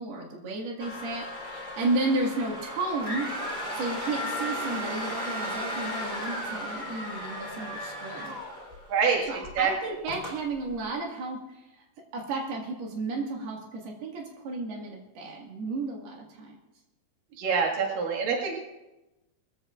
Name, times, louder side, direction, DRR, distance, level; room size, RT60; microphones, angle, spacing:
voice 1, 0.0-3.3 3.8-8.4 9.3-11.6 12.1-16.6, right 2 dB, 90° right, -1 dB, 3.9 m, -33 dB
sound 1, 0.8-9.0 9.4-9.6 10.1-10.4, equal, 15° right, 2.4 m, -35 dB
voice 2, 8.9-9.7 17.4-18.6, right 5 dB, 65° right, -2 dB, 3.5 m, -26 dB
21.0 x 15.0 x 2.5 m, 0.99 s
omnidirectional pair, 4.4 m